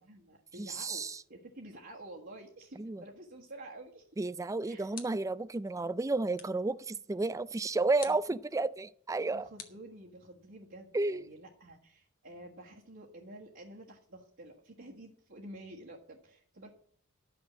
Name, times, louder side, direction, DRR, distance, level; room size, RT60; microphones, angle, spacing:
voice 1, 0.0-4.1 4.6-4.9 8.0-8.2 9.3-16.7, right 1 dB, 60° right, 1.6 m, -50 dB
voice 2, 0.6-1.2 2.8-3.0 4.2-9.5 10.9-11.2, right 3 dB, 15° right, 0.3 m, -32 dB
sound 1, 4.9-5.4 6.3-6.7 8.0-8.4 9.6-10.5, left 7 dB, 45° left, 1.4 m, -49 dB
12.0 x 6.1 x 7.3 m
head